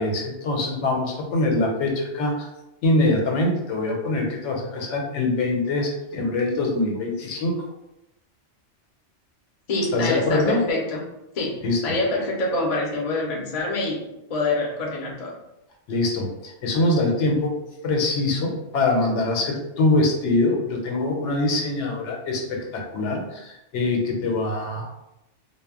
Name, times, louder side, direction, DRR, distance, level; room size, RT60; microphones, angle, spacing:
voice 1, 0.0-2.5 2.8-7.5 9.9-10.6 11.6-12.0 15.9-17.5 17.8-24.9, left 2 dB, 80° left, 1 dB, 0.9 m, -23 dB
voice 2, 9.7-11.0 11.3-11.6 11.8-14.0 14.3-15.4 20.9-21.0, left 2 dB, 45° left, -1 dB, 0.5 m, -25 dB
2.1 x 2.0 x 3.5 m, 0.90 s
omnidirectional pair, 1.2 m